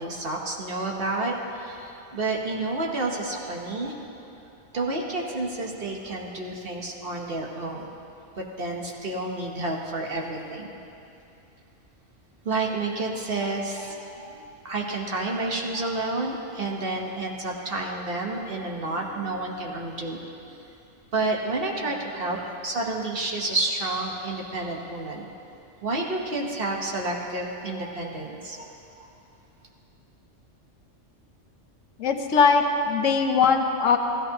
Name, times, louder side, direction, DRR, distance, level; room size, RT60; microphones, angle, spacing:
voice 1, 0.0-4.0 4.7-7.9 8.4-10.8 12.4-14.3 14.6-20.2 21.1-22.4 22.6-25.3 25.8-28.7, right 2 dB, 50° right, 0 dB, 1.3 m, -30 dB
voice 2, 32.0-34.0, left 5 dB, 85° left, 5 dB, 1.2 m, -20 dB
15.0 x 13.5 x 2.9 m, 2.7 s
omnidirectional pair, 1.3 m